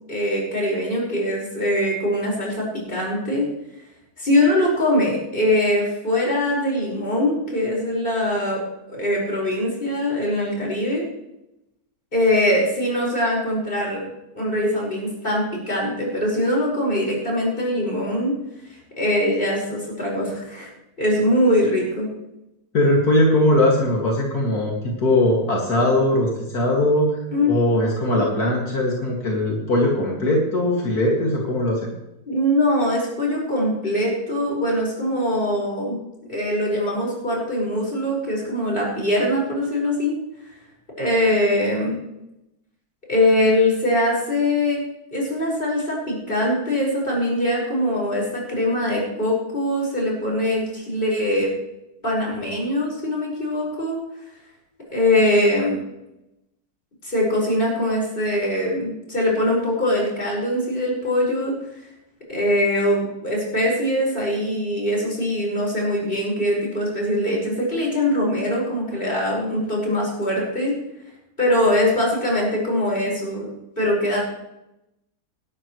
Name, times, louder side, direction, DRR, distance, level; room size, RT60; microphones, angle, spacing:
voice 1, 0.1-3.5 4.2-8.6 8.9-11.0 12.1-14.0 14.3-18.4 19.0-20.7 21.0-22.1 27.3-27.6 32.3-36.0 36.3-40.2 41.0-42.0 43.1-44.8 45.1-51.5 52.0-54.0 54.9-55.8 57.0-61.5 62.3-70.8 71.4-73.5 73.8-74.2, left 1 dB, 35° left, -3 dB, 5.5 m, -22 dB
voice 2, 22.7-27.1 27.4-31.9, left 1 dB, 75° left, -2 dB, 2.9 m, -20 dB
19.0 x 12.0 x 3.2 m, 0.89 s
omnidirectional pair, 1.6 m